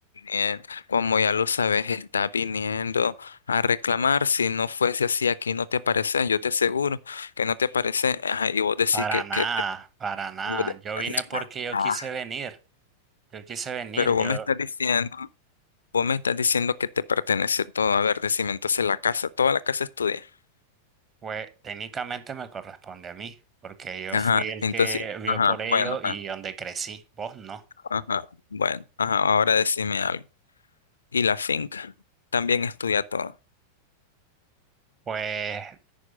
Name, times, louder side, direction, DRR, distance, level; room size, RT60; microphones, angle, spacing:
voice 1, 0.2-9.5 10.5-11.0 11.3-11.4 11.7-12.1 14.0-15.3 15.9-20.3 24.1-26.1 27.9-30.2 31.1-31.9 32.3-33.3, left 6 dB, 70° left, 0.4 m, -25 dB
voice 2, 8.9-12.6 13.3-14.5 21.2-23.3 23.6-27.6 35.1-35.8, right 6 dB, 25° right, 1.1 m, -33 dB
10.5 x 4.8 x 5.1 m
figure-of-eight pair, 90°, 0 cm